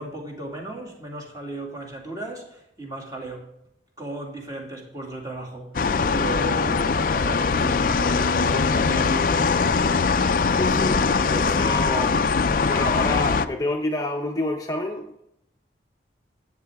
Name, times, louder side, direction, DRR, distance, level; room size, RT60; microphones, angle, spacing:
voice 1, 0.0-3.5 4.0-9.3, right 2 dB, 20° right, 2.3 m, -36 dB
sound 1, 5.7-13.5, left 4 dB, 50° left, 0.4 m, -21 dB
voice 2, 10.6-15.2, left 2 dB, 20° left, 0.8 m, -29 dB
13.0 x 8.9 x 3.5 m
head